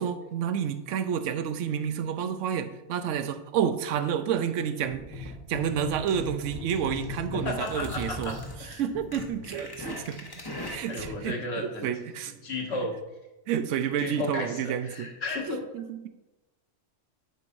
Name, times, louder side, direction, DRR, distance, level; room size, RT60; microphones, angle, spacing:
voice 1, 0.0-8.4 8.8-10.2 10.7-12.3 13.5-15.1 15.7-16.1, right 8 dB, 85° right, 10 dB, 0.9 m, -30 dB
sound 1, 4.8-11.2, left 2 dB, 20° left, 0.8 m, -39 dB
voice 2, 7.3-8.8 10.9-11.9 12.4-12.9 14.0-15.6, left 2 dB, 60° left, 1 dB, 1.5 m, -34 dB
10.5 x 4.6 x 2.6 m, 1.0 s
omnidirectional pair, 1.2 m